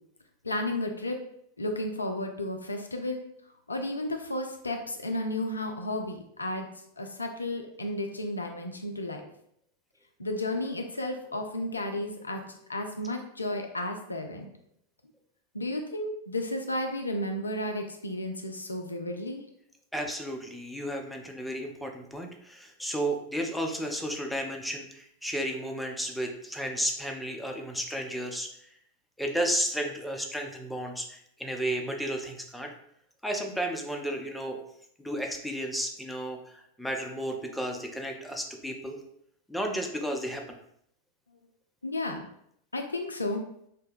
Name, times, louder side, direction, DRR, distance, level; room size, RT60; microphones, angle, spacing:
voice 1, 0.4-1.2 1.6-3.3 3.7-6.7 7.0-9.2 10.2-14.5 15.5-19.4 41.8-42.3 42.7-43.4, left 1 dB, 80° left, 4 dB, 0.3 m, -33 dB
voice 2, 19.9-28.5 29.2-32.7 33.2-34.6 35.0-36.4 36.8-39.0 39.5-40.4, equal, ahead, 2 dB, 0.4 m, -33 dB
2.6 x 2.2 x 3.4 m, 0.71 s
figure-of-eight pair, 90°, 0 cm